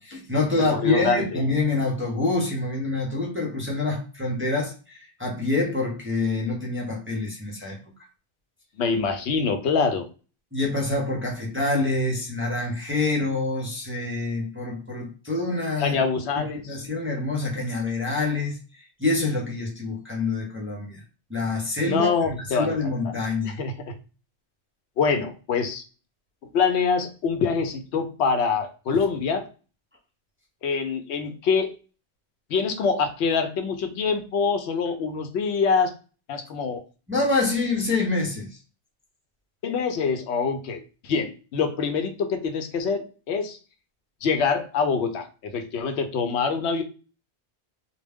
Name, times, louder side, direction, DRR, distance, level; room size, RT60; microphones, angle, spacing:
voice 1, 0.0-7.8 10.5-16.0 16.4-21.0 21.3-23.6 37.1-38.6, left 3 dB, 15° right, -2 dB, 0.5 m, -26 dB
voice 2, 0.7-1.4 8.8-10.1 15.8-16.8 21.9-22.7 23.4-23.9 25.0-25.8 26.5-29.5 30.6-31.7 32.5-35.9 36.3-36.8 39.6-43.6 44.2-46.8, left 5 dB, 85° left, 6 dB, 0.9 m, -25 dB
2.2 x 2.1 x 3.4 m, 0.35 s
omnidirectional pair, 1.1 m